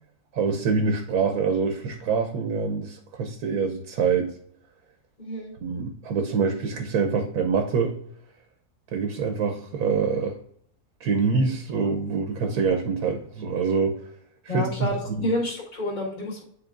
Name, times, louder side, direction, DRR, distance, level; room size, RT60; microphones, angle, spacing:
voice 1, 0.3-4.3 5.6-8.0 8.9-10.4 11.0-14.0 14.4-15.3, right 5 dB, 75° right, 4 dB, 1.2 m, -25 dB
voice 2, 5.2-5.5 14.5-16.4, left 1 dB, 30° left, -4 dB, 1.7 m, -29 dB
9.8 x 3.9 x 2.5 m, 0.68 s
omnidirectional pair, 1.7 m